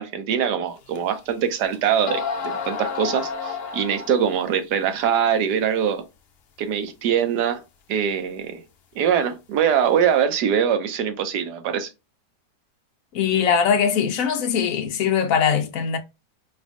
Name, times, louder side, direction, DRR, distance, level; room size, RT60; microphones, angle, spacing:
voice 1, 0.0-6.0 6.6-7.6 7.9-8.6 9.0-11.9, right 8 dB, 80° right, 1.3 m, -23 dB
sound 1, 1.0-1.1 1.7-1.8 2.1-4.5, left 5 dB, 80° left, 0.5 m, -30 dB
voice 2, 13.1-16.0, left 7 dB, 65° left, 1.0 m, -21 dB
4.2 x 3.5 x 2.4 m
omnidirectional pair, 1.8 m